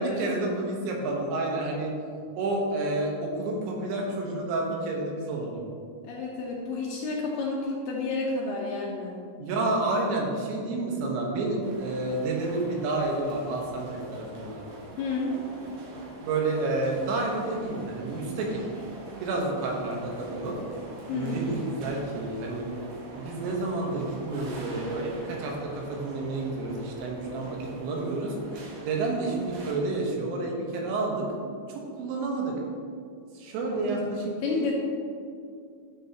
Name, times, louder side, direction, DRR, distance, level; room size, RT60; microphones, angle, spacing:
voice 1, 0.0-1.9 2.4-5.6 9.4-14.6 16.2-18.7 19.2-20.6 21.1-22.7 23.2-28.4 28.8-31.3 31.7-32.6 33.4-34.7, right 2 dB, 80° right, -1 dB, 3.5 m, -30 dB
voice 2, 6.1-9.1 15.0-15.3 21.1-21.6 33.7-34.1 34.4-34.7, left 3 dB, 75° left, -3 dB, 2.6 m, -30 dB
sound 1, 11.6-29.7, right 1 dB, 65° right, 2.1 m, -44 dB
12.5 x 7.2 x 2.9 m, 2.3 s
omnidirectional pair, 5.2 m